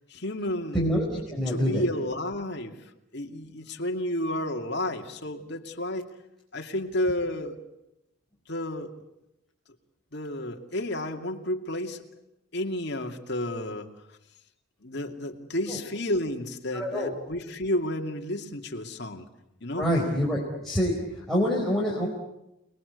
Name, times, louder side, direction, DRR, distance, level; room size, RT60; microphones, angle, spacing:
voice 1, 0.1-0.8 1.3-2.7 3.1-6.1 6.5-7.6 8.5-8.9 10.1-12.0 12.5-13.9 14.8-19.2 19.6-19.9, left 1 dB, 55° left, 3 dB, 2.6 m, -31 dB
voice 2, 0.7-1.0 1.3-1.8 15.7-15.8 16.7-17.1 19.8-22.1, equal, ahead, -5 dB, 4.7 m, -26 dB
29.5 x 21.0 x 8.3 m, 0.88 s
head